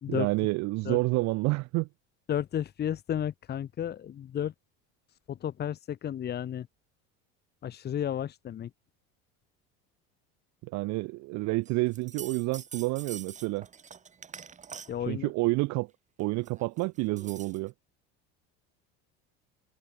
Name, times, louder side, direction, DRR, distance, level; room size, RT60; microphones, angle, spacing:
voice 1, 0.1-1.9 10.6-13.7 15.1-15.9 16.2-17.7, right 23 dB, 60° right, 2.3 m, -29 dB
voice 2, 2.3-4.5 5.3-6.7 7.6-8.7 14.9-15.3, left 10 dB, 30° left, 2.3 m, -32 dB
sound 1, 11.6-15.1 16.2-17.7, right 6 dB, 25° right, 4.9 m, -45 dB
cardioid pair, 140°, 31 cm